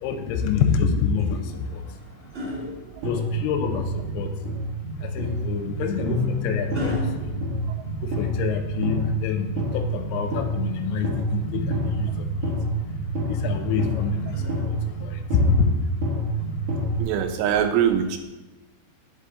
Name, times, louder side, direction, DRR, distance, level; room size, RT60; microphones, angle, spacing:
voice 1, 0.0-1.8 3.0-4.3 5.0-7.4 8.0-12.5 13.3-14.2 14.7-15.7, left 6 dB, 80° left, 6 dB, 2.4 m, -27 dB
sound 1, 1.2-3.7 5.2-8.4 10.2-11.4 13.3-15.2 16.4-16.6, left 1 dB, 35° right, 1.1 m, -39 dB
sound 2, 3.0-17.0, right 1 dB, 60° right, 2.1 m, -28 dB
voice 2, 17.0-18.2, right 9 dB, 80° right, 6 dB, 2.6 m, -22 dB
8.3 x 5.3 x 3.7 m, 1.1 s
omnidirectional pair, 5.1 m